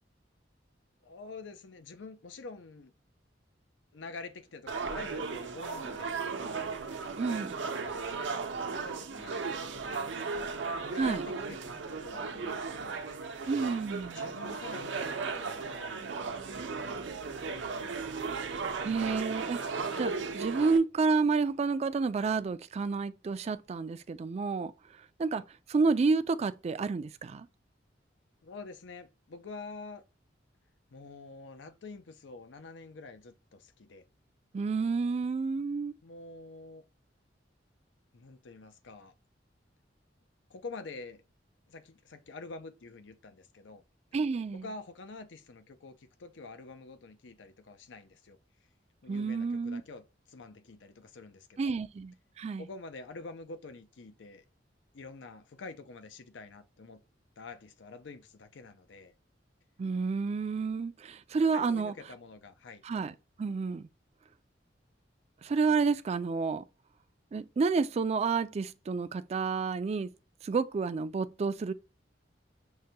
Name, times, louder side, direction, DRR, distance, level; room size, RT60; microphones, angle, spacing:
voice 1, 1.0-2.9 3.9-6.7 7.8-13.1 14.1-17.0 17.3-18.3 20.2-20.3 25.3-25.4 28.4-30.0 30.9-34.0 36.0-36.8 38.1-39.1 40.5-41.2 41.7-43.8 44.5-48.4 49.0-51.8 52.6-54.4 54.9-57.0 57.4-59.1 61.5-62.8, left 3 dB, 85° left, 0.6 m, -47 dB
sound 1, 4.7-20.8, right 4 dB, 80° right, 0.6 m, -36 dB
voice 2, 7.2-7.6 11.0-11.2 13.5-14.2 18.8-24.7 25.2-25.4 25.7-27.5 34.5-35.9 44.1-44.6 49.1-49.8 51.6-52.6 59.8-61.9 62.8-63.9 65.4-66.6 67.3-70.1 70.4-71.7, right 4 dB, 35° right, 0.3 m, -30 dB
6.3 x 2.2 x 2.7 m
head